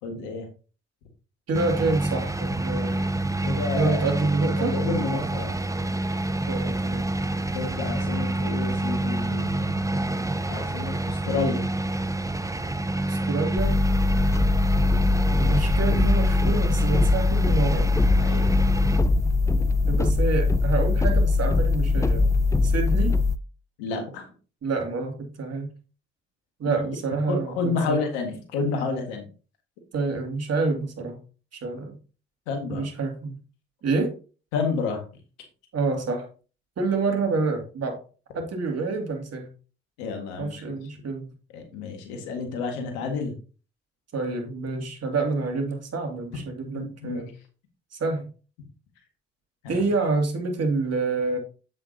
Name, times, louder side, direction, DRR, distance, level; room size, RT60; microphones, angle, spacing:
voice 1, 0.0-0.5 3.4-4.1 4.6-5.5 7.5-9.8 10.3-11.7 18.2-18.5 23.8-24.3 26.6-26.8 27.3-29.3 32.5-32.9 34.5-35.0 40.0-40.7 41.5-43.3 46.7-47.2 49.6-49.8, left 4 dB, 85° left, 5 dB, 1.7 m, -30 dB
sound 1, 1.5-19.0, right 2 dB, 10° right, 0.9 m, -27 dB
voice 2, 1.5-3.1 3.7-4.8 6.5-7.1 13.1-13.8 15.4-17.9 19.9-22.3 22.6-23.1 24.6-25.7 26.6-28.0 29.9-31.2 31.5-32.0 32.7-33.3 33.8-34.1 35.7-36.2 36.8-38.0 38.3-39.5 40.4-41.3 44.1-47.3 47.9-48.2 49.7-51.4, right 3 dB, 55° right, 3 dB, 2.5 m, -27 dB
sound 2, 13.6-23.4, left 3 dB, 10° left, 0.5 m, -21 dB
8.1 x 7.4 x 2.8 m, 0.35 s
hypercardioid pair, 45°, 30 cm